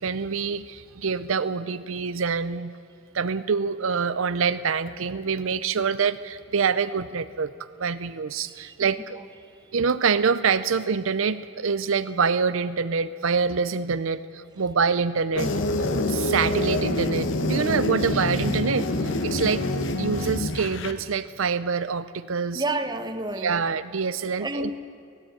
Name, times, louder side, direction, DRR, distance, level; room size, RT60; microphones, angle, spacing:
voice 1, 0.0-2.7 3.1-9.2 9.7-15.5 16.1-19.7 20.0-22.6 23.4-24.7, right 5 dB, 70° right, 13 dB, 0.6 m, -26 dB
voice 2, 9.4-9.7 22.5-23.6 24.4-24.8, right 2 dB, 20° right, 7 dB, 1.2 m, -30 dB
sound 1, 15.4-20.9, left 2 dB, 60° left, 1.2 m, -26 dB
18.0 x 17.0 x 9.0 m, 2.5 s
head